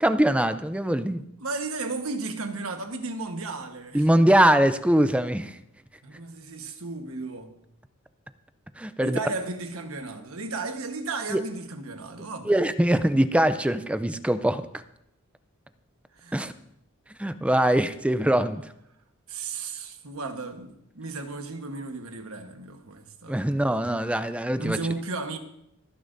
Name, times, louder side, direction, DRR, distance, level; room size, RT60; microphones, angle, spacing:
voice 1, 0.0-1.2 3.9-5.6 8.8-9.2 11.3-11.4 12.4-14.7 16.3-16.5 17.2-18.7 23.3-24.8, right 1 dB, 5° right, 0.4 m, -22 dB
voice 2, 1.4-4.1 6.0-7.5 9.0-12.5 16.2-16.4 19.3-23.4 24.6-25.4, right 3 dB, 70° right, 1.3 m, -34 dB
27.0 x 9.9 x 2.7 m
head